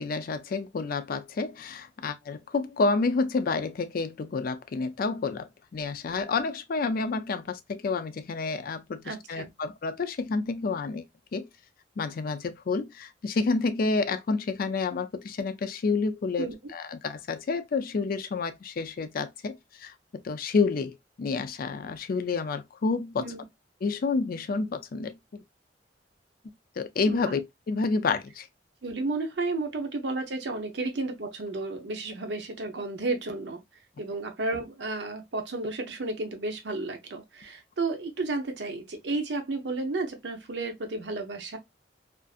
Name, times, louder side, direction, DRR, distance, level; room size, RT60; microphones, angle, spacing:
voice 1, 0.0-11.0 11.3-11.5 12.0-19.9 20.2-23.3 23.8-25.4 26.8-27.4 27.7-28.5, left 4 dB, 55° left, 0.4 m, -29 dB
voice 2, 9.0-9.5 16.4-16.5 23.2-23.4 27.1-27.3 28.8-33.6 34.0-41.6, right 3 dB, 75° right, 0.7 m, -32 dB
2.5 x 2.5 x 2.3 m
head